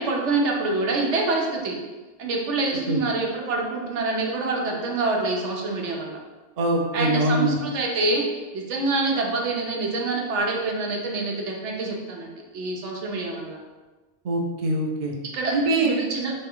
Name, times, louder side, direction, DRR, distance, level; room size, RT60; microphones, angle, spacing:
voice 1, 0.0-1.8 2.2-6.2 6.9-8.2 8.5-13.6 15.3-16.3, right 3 dB, 85° right, 0 dB, 1.0 m, -26 dB
voice 2, 6.6-7.6 14.2-15.1 15.5-15.9, right 2 dB, 50° right, 0 dB, 0.6 m, -23 dB
3.3 x 3.2 x 3.6 m, 1.2 s
omnidirectional pair, 1.2 m